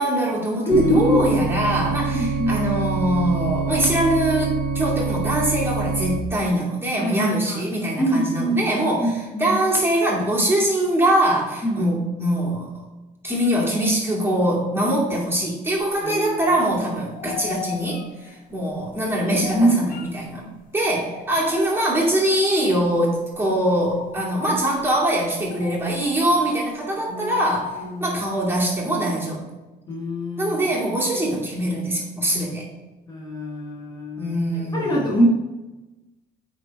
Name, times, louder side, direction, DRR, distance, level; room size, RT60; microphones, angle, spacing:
voice 1, 0.0-12.7 13.2-20.4 20.7-29.4 30.4-32.6 34.2-35.2, right 1 dB, 15° right, -4 dB, 2.4 m, -23 dB
voice 2, 0.7-1.4 2.1-2.6 6.9-7.6 8.0-8.6 9.0-9.5 11.6-11.8 16.0-16.4 19.2-19.9 27.1-27.4 27.8-28.2 29.9-30.6 33.1-34.3 34.7-35.3, equal, 25° left, -4 dB, 1.5 m, -23 dB
sound 1, 0.7-6.2, right 4 dB, 60° right, 1.0 m, -26 dB
sound 2, 15.8-16.5 16.7-20.7 21.1-22.4 22.8-23.0 23.3-29.1, left 8 dB, 55° left, 0.8 m, -38 dB
8.9 x 3.6 x 4.6 m, 1.1 s
cardioid pair, 110°, 17 cm